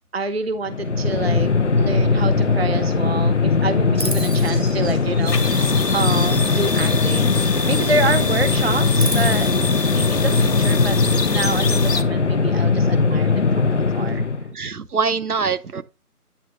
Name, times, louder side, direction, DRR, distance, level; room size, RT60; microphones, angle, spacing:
voice 1, 0.1-9.5 9.9-14.3, right 3 dB, 40° right, 0.5 m, -27 dB
sound 1, 0.7-14.5, left 4 dB, 50° left, 0.7 m, -20 dB
Chirp tweet, 3.9-8.0 8.3-9.5, right 2 dB, 85° right, 2.1 m, -34 dB
sound 2, 5.3-12.0, left 4 dB, 90° left, 1.1 m, -26 dB
voice 2, 14.5-15.8, right 5 dB, 70° right, 0.8 m, -24 dB
9.5 x 3.4 x 6.4 m
figure-of-eight pair, 155°, 47 cm